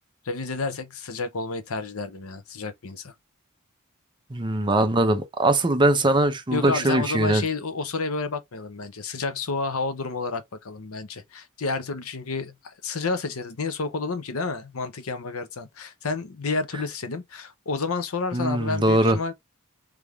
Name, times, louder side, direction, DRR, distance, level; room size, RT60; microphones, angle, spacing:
voice 1, 0.2-3.1 6.5-19.3, left 4 dB, 75° left, 0.8 m, -30 dB
voice 2, 4.3-7.5 18.3-19.2, right 1 dB, 20° right, 0.7 m, -21 dB
3.5 x 3.3 x 3.5 m
head